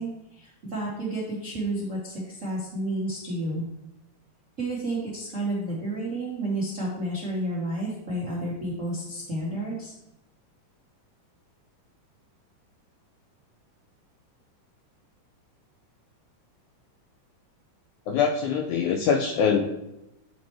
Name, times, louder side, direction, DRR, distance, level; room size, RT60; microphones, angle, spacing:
voice 1, 0.0-3.6 4.6-9.9, right 1 dB, 80° right, -5 dB, 0.6 m, -31 dB
voice 2, 18.1-19.6, left 6 dB, 80° left, 4 dB, 1.7 m, -23 dB
10.0 x 4.3 x 3.1 m, 0.87 s
omnidirectional pair, 3.8 m